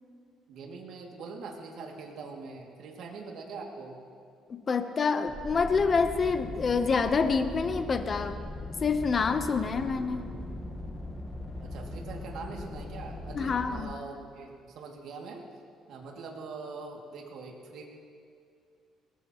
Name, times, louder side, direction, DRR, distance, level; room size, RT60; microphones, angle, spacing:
voice 1, 0.5-4.0 11.6-15.4 15.9-17.9, right 4 dB, 70° right, 0 dB, 2.3 m, -43 dB
voice 2, 4.5-8.4 8.8-10.3 13.3-13.9, left 5 dB, 35° left, 8 dB, 0.8 m, -27 dB
sound 1, 5.3-13.8, left 1 dB, 15° left, 1.4 m, -40 dB
20.5 x 20.0 x 3.0 m, 2.4 s
cardioid pair, 130°, 0 cm